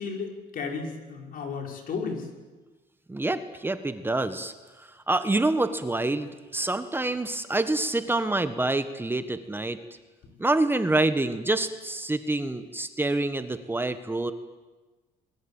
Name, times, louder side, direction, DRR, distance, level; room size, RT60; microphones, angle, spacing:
voice 1, 0.0-2.3, left 5 dB, 55° left, 3 dB, 5.8 m, -33 dB
voice 2, 3.1-9.8 10.4-14.3, right 2 dB, 10° right, 10 dB, 1.5 m, -27 dB
28.0 x 22.0 x 9.0 m, 1.2 s
cardioid pair, 110°, 17 cm